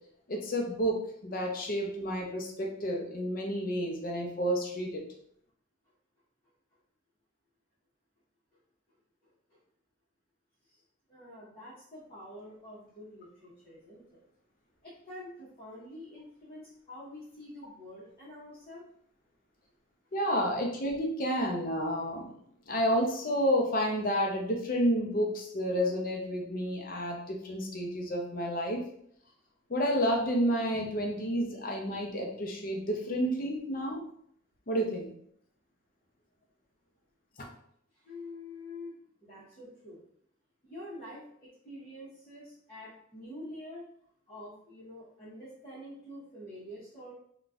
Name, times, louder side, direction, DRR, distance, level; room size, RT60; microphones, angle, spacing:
voice 1, 0.3-5.0 20.1-22.3 22.7-28.8 29.7-34.0 34.7-35.1, equal, 45° left, 1 dB, 0.5 m, -30 dB
voice 2, 11.1-14.2 14.8-18.8 37.9-39.0 39.2-40.0 40.6-43.8 44.3-47.1, left 1 dB, 30° left, -11 dB, 0.9 m, -47 dB
3.9 x 2.3 x 2.4 m, 0.68 s
head